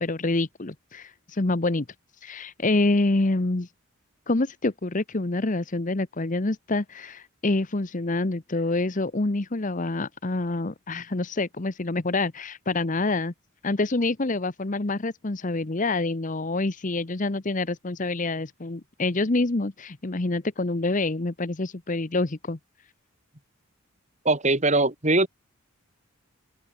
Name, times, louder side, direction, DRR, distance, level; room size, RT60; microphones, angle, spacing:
voice 1, 0.0-1.9 2.2-3.7 4.3-13.3 13.6-22.6, left 2 dB, 35° left, 0.9 m, -26 dB
voice 2, 24.2-25.3, right 2 dB, 30° right, 2.9 m, -21 dB
open air
head